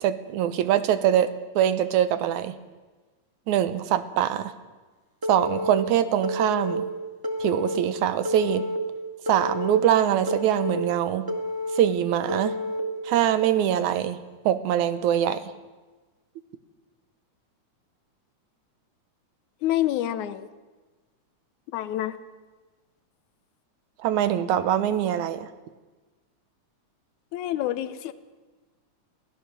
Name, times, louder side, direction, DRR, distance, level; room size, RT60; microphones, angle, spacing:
voice 1, 0.0-1.3 1.6-2.6 3.5-4.5 5.3-6.9 7.4-8.7 9.3-11.3 11.7-12.5 13.0-14.2 14.5-15.4 24.0-25.5, right 10 dB, 80° right, 12 dB, 2.3 m, -23 dB
Telephone, 5.2-5.7 6.2-6.7 7.2-7.8 8.2-8.8 9.3-9.8 10.3-10.8 11.3-11.8 12.3-12.8, left 1 dB, 10° right, 1.4 m, -30 dB
voice 2, 19.6-20.5 21.7-22.2 27.3-28.1, left 13 dB, 80° left, 12 dB, 2.2 m, -27 dB
23.0 x 16.5 x 6.8 m, 1.3 s
omnidirectional pair, 3.4 m